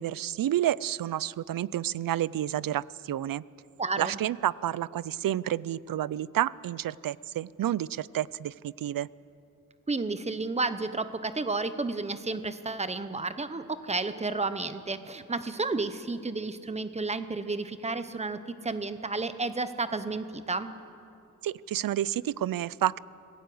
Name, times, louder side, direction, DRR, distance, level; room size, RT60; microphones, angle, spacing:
voice 1, 0.0-3.4 4.0-9.1 21.4-23.0, right 12 dB, 90° right, 21 dB, 0.5 m, -30 dB
voice 2, 3.8-4.2 9.9-20.7, right 3 dB, 20° right, 11 dB, 0.9 m, -32 dB
27.0 x 18.5 x 7.8 m, 2.7 s
wide cardioid pair, 175°, 33 cm